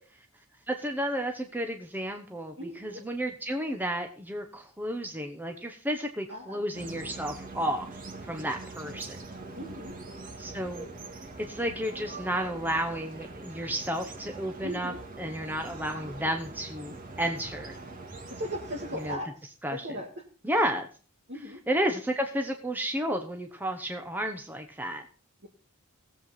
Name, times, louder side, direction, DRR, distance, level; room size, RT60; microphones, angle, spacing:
voice 1, 0.7-7.9 8.2-9.3 10.4-10.9 11.5-17.8 18.9-19.2 19.6-20.0 20.4-20.9 21.4-25.0, equal, 10° right, 4 dB, 1.0 m, -32 dB
voice 2, 2.6-3.0 6.3-6.6 8.8-8.9 9.5-9.9 14.6-15.0 18.4-19.3 19.8-20.1 21.3-21.6, equal, 55° right, -1 dB, 2.1 m, -37 dB
sound 1, 6.7-19.2, right 3 dB, 40° right, 1.9 m, -43 dB
18.0 x 7.8 x 4.1 m, 0.39 s
head